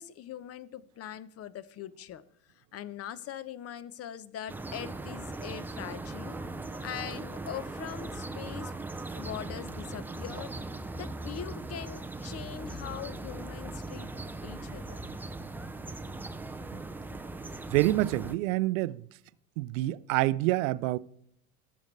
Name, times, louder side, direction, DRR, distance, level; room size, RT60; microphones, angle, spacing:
voice 1, 0.0-2.2 2.6-6.4 6.8-8.7 9.1-10.5 10.9-14.1 14.4-15.0, left 10 dB, 35° left, 0.8 m, -42 dB
sound 1, 4.5-18.4, right 2 dB, 5° right, 0.4 m, -39 dB
voice 2, 17.7-19.0 19.6-21.0, right 18 dB, 65° right, 0.6 m, -27 dB
19.5 x 7.1 x 3.2 m
hypercardioid pair, 85°, 44 cm